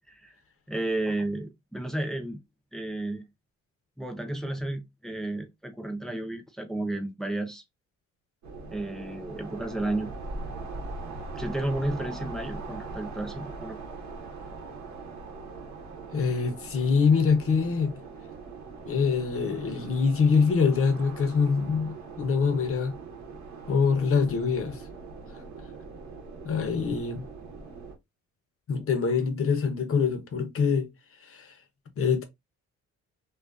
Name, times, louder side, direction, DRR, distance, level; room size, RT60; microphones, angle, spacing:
voice 1, 0.7-2.4 2.7-3.2 4.0-7.6 8.7-10.1 11.4-13.8, right 1 dB, ahead, 0.5 m, -32 dB
sound 1, 8.4-28.0, right 3 dB, 65° right, 0.9 m, -41 dB
voice 2, 16.1-17.9 18.9-22.9 23.7-24.8 26.4-27.2 28.7-30.9 31.3-31.5 32.0-32.2, left 5 dB, 45° left, 0.7 m, -24 dB
2.4 x 2.3 x 2.3 m
cardioid pair, 90°, 30 cm